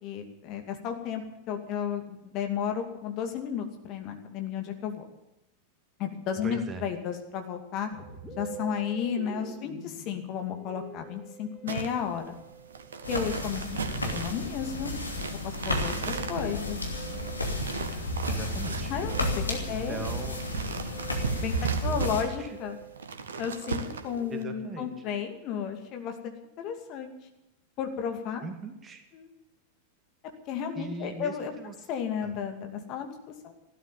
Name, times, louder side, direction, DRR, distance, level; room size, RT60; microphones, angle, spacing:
voice 1, 0.0-5.0 6.0-7.9 8.4-12.4 13.1-13.7 14.1-14.9 15.4-16.8 18.9-20.0 21.4-21.5 21.8-22.8 23.4-27.1 27.8-28.4 29.1-29.3 30.5-31.5 31.9-33.1 33.4-33.5, left 8 dB, 40° left, 5 dB, 2.5 m, -33 dB
voice 2, 6.4-6.8 13.9-14.2 18.3-18.9 19.7-20.4 21.9-22.1 22.4-22.6 24.3-24.9 28.4-29.0 30.7-31.7 32.2-32.4, right 3 dB, 20° right, 5 dB, 2.5 m, -39 dB
Musical instrument, 7.9-25.5, right 3 dB, 5° right, 4.4 m, -47 dB
sound 1, 11.7-24.4, right 5 dB, 65° right, 1.6 m, -38 dB
sound 2, 13.0-22.2, left 1 dB, 80° left, 2.8 m, -32 dB
15.5 x 13.0 x 7.1 m, 0.92 s
figure-of-eight pair, 90°, 0 cm